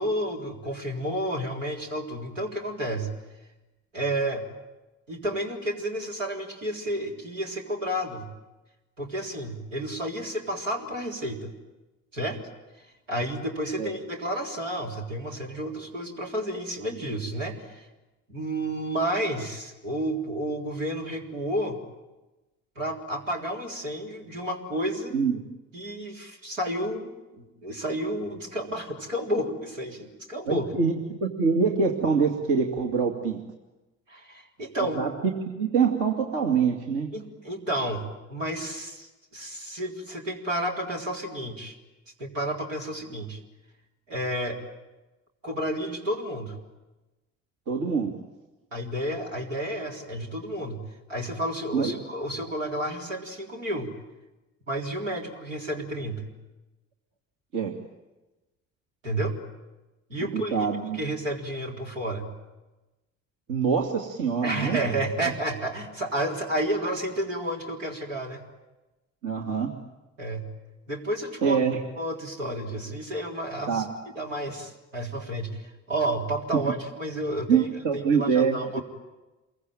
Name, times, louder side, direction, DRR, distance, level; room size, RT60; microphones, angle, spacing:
voice 1, 0.0-3.1 3.9-4.4 5.1-8.3 9.0-11.5 12.1-12.4 13.1-17.9 18.3-21.8 22.8-25.1 25.7-30.7 34.1-35.0 37.1-41.7 42.2-43.4 44.1-44.6 45.4-46.5 48.7-50.8 51.1-53.9 54.7-56.3 59.0-59.4 60.1-60.6 60.9-62.3 64.4-68.4 70.2-70.5 70.9-71.6 72.0-73.8 74.2-75.6 75.9-77.7 77.9-78.8, right 1 dB, 80° right, 0 dB, 3.7 m, -31 dB
voice 2, 30.5-33.4 34.8-37.1 47.7-48.1 51.7-52.0 57.5-57.8 60.3-61.0 63.5-64.8 65.2-65.3 69.2-69.7 71.4-71.8 73.7-73.9 76.5-76.7 77.5-78.8, right 5 dB, 55° right, 2 dB, 2.5 m, -25 dB
27.5 x 23.0 x 9.2 m, 1.1 s
figure-of-eight pair, 50°, 38 cm